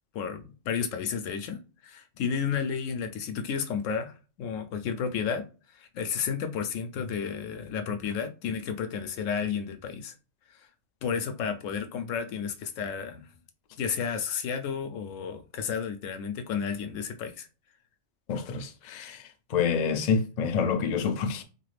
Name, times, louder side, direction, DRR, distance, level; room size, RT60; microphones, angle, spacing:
voice 1, 0.1-4.1 4.4-5.5 5.7-10.1 11.0-13.3 13.8-17.5, left 6 dB, 80° left, 0.9 m, -32 dB
voice 2, 18.3-21.4, left 6 dB, 65° left, 0.4 m, -28 dB
2.6 x 2.4 x 3.2 m
omnidirectional pair, 1.3 m